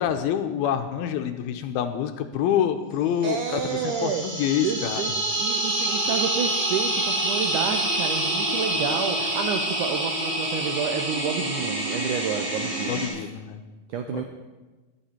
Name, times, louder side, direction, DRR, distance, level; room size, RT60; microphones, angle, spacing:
voice 1, 0.0-5.0 12.9-13.6 14.1-14.3, left 9 dB, 80° left, 7 dB, 2.6 m, -27 dB
voice 2, 3.2-4.2 4.6-5.1 5.4-13.0 13.9-14.2, right 7 dB, 85° right, 5 dB, 1.8 m, -29 dB
sound 1, 3.3-13.1, right 1 dB, 25° right, 3.5 m, -27 dB
22.0 x 8.1 x 4.3 m, 1.2 s
omnidirectional pair, 4.5 m